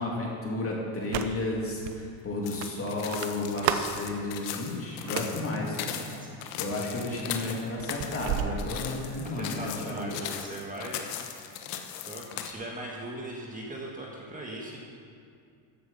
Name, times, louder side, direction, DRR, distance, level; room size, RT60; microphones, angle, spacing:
voice 1, 0.0-6.2 6.6-10.2, left 2 dB, 25° left, -2 dB, 2.7 m, -33 dB
sound 1, 1.0-1.5 1.9-2.0 2.6-4.0 4.9-5.6 6.3-6.6 7.0-9.2, right 10 dB, 60° right, 0.9 m, -33 dB
sound 2, 2.4-12.5, left 9 dB, 90° left, 1.2 m, -38 dB
voice 2, 5.8-6.3 7.3-7.6 9.3-11.6 12.1-14.8, right 1 dB, 15° right, -3 dB, 1.6 m, -40 dB
14.0 x 7.9 x 5.6 m, 2.4 s
cardioid pair, 125°, 49 cm